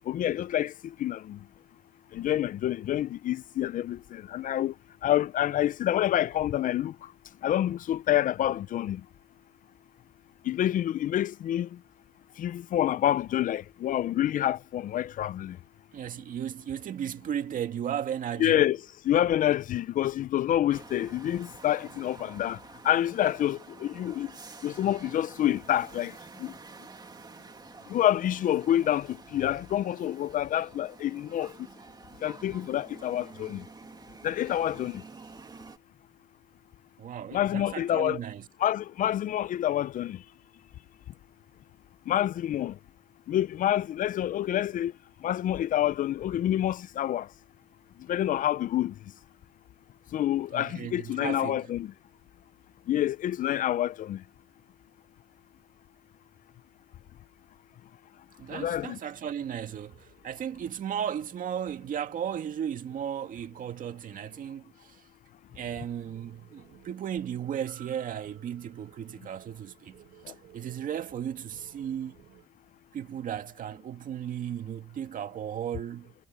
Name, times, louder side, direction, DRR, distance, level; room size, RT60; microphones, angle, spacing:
voice 1, 0.1-1.4 2.1-4.7 5.0-6.9 7.4-9.0 10.5-11.7 12.4-15.6 18.4-18.8 19.0-22.6 22.8-24.3 24.6-26.1 26.4-26.5 27.9-31.5 32.2-33.6 34.2-35.0 37.3-38.2 38.6-40.2 42.1-42.7 43.3-44.9 45.2-47.3 48.1-48.9 50.1-51.9 52.9-54.2 58.5-59.0, left 12 dB, 50° left, 0.5 m, -27 dB
voice 2, 15.9-18.6 37.0-38.5 50.5-51.6 58.4-65.0 65.5-72.1 72.9-76.1, right 9 dB, 50° right, 2.1 m, -35 dB
sound 1, 20.7-35.8, right 4 dB, 25° right, 2.3 m, -49 dB
sound 2, 65.5-72.5, right 14 dB, 75° right, 4.7 m, -56 dB
cardioid pair, 110°, 17 cm